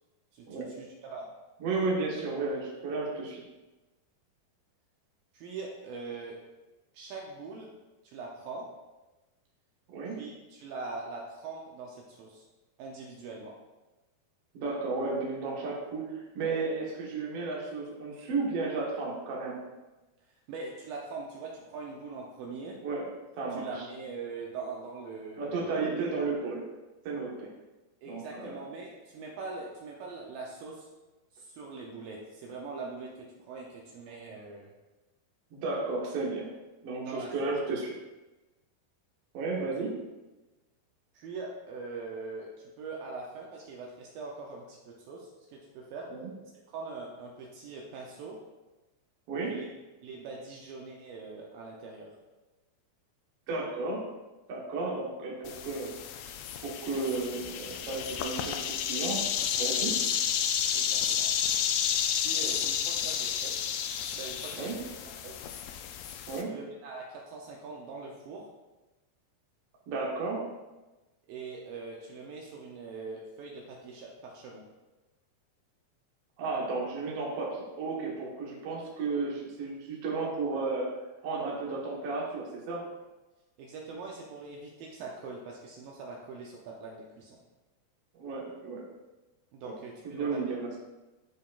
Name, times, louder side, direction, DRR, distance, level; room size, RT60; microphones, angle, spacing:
voice 1, 0.3-1.3 5.3-6.4 6.9-7.7 8.0-8.7 10.2-12.4 12.8-13.6 20.5-22.8 23.5-25.6 28.0-30.9 31.3-34.7 37.0-37.3 39.6-39.7 41.1-42.5 42.8-46.1 46.7-48.4 49.5-49.7 50.0-52.1 60.7-61.3 62.2-63.5 64.1-64.8 65.2-65.3 66.5-68.5 71.3-74.6 83.6-87.4 89.5-90.4, right 4 dB, 75° right, -1 dB, 2.3 m, -42 dB
voice 2, 1.6-3.4 9.9-10.2 14.5-19.6 22.8-23.1 23.4-23.9 25.4-26.6 27.0-27.5 28.1-28.6 35.5-36.5 36.8-37.9 39.3-40.0 46.1-46.2 49.3-49.6 53.5-54.1 54.5-55.9 56.6-59.3 59.6-60.0 64.5-64.8 66.3-66.5 69.9-70.4 76.4-80.9 81.2-82.8 88.1-88.8 89.6-89.7 90.0-90.7, right 3 dB, 55° right, -3 dB, 1.7 m, -33 dB
sound 1, 55.5-66.4, left 8 dB, 80° left, 2.4 m, -31 dB
11.0 x 5.1 x 2.4 m, 1.1 s
omnidirectional pair, 4.5 m